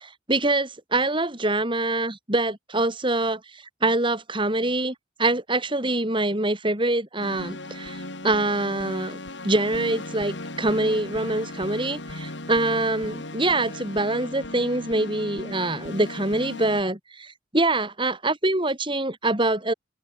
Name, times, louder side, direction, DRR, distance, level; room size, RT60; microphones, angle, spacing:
voice 1, 0.3-4.9 5.2-9.2 9.4-19.7, right 2 dB, 25° right, 5.4 m, -25 dB
sound 1, 7.2-16.8, left 2 dB, 70° left, 3.7 m, -37 dB
head